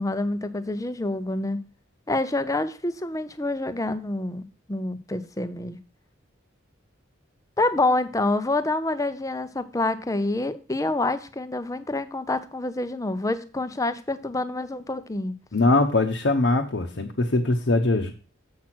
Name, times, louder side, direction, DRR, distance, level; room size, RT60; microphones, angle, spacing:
voice 1, 0.0-1.6 2.1-5.8 7.6-15.3, left 2 dB, 15° left, 0.6 m, -27 dB
voice 2, 15.5-18.1, left 2 dB, 65° left, 0.9 m, -22 dB
7.5 x 5.9 x 6.0 m
head